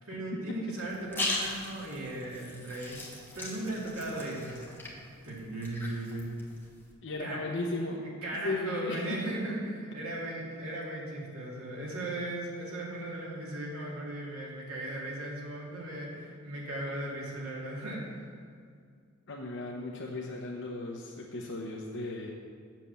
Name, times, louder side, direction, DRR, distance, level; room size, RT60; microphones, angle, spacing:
voice 1, 0.0-3.1 3.3-4.6 5.2-6.3 7.2-7.4 8.0-18.2, right 1 dB, 80° right, -3 dB, 2.3 m, -37 dB
sound 1, 0.8-6.9, left 2 dB, 10° left, 1.3 m, -39 dB
voice 2, 7.0-8.0 8.3-9.0 19.3-22.3, left 2 dB, 60° left, -1 dB, 0.9 m, -36 dB
7.4 x 7.4 x 7.0 m, 2.2 s
head